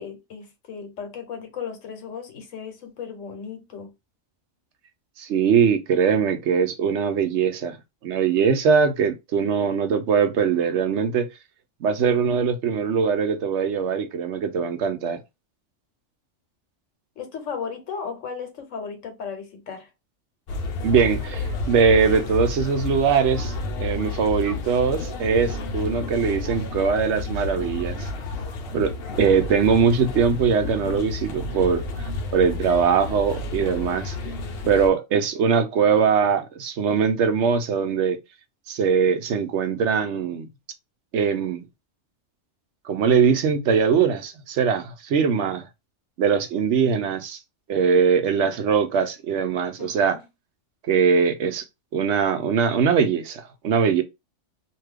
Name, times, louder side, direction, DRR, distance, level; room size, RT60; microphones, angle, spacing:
voice 1, 0.0-3.9 17.2-19.9 49.8-50.2, left 6 dB, 85° left, 1.2 m, -35 dB
voice 2, 5.2-7.8 8.0-11.3 11.8-15.2 20.8-23.5 23.8-28.1 28.7-31.8 32.3-34.2 34.7-38.2 38.7-40.5 41.1-41.7 42.8-45.6 46.2-47.4 47.7-50.2 50.8-51.6 51.9-54.0, right 6 dB, 70° right, 0.9 m, -21 dB
sound 1, 20.5-34.9, left 3 dB, 60° left, 0.8 m, -31 dB
2.6 x 2.3 x 3.4 m
omnidirectional pair, 1.3 m